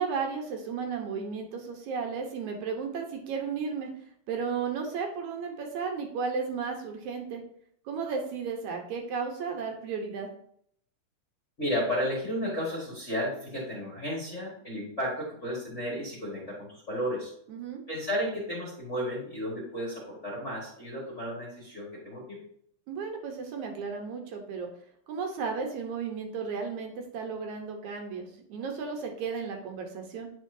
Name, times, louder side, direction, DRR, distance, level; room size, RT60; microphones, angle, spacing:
voice 1, 0.0-3.9 4.3-7.4 7.9-10.3 17.5-17.8 22.9-24.7 25.1-30.3, right 5 dB, 65° right, 3 dB, 2.1 m, -34 dB
voice 2, 11.6-17.3 17.9-22.4, equal, 30° left, -6 dB, 1.4 m, -33 dB
10.5 x 4.5 x 2.7 m, 0.67 s
omnidirectional pair, 4.2 m